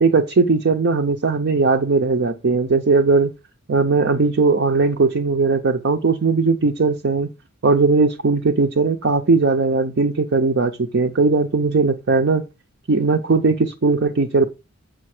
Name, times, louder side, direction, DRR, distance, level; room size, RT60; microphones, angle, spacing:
voice 1, 0.0-3.3 3.7-7.3 7.6-12.4 12.9-14.5, right 3 dB, 55° right, 0.6 m, -18 dB
7.5 x 5.2 x 4.8 m
head